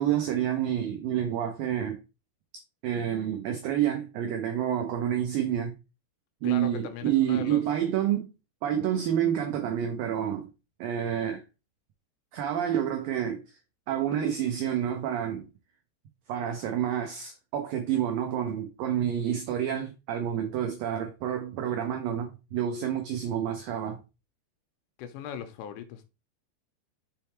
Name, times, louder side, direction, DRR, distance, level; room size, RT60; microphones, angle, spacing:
voice 1, 0.0-2.0 2.8-5.7 6.4-8.3 8.6-10.5 10.8-11.4 12.3-13.4 13.9-15.5 16.3-24.0, right 10 dB, 90° right, 1.9 m, -28 dB
voice 2, 6.4-7.6 25.0-26.1, left 8 dB, 80° left, 2.9 m, -38 dB
6.8 x 3.5 x 4.4 m
omnidirectional pair, 5.1 m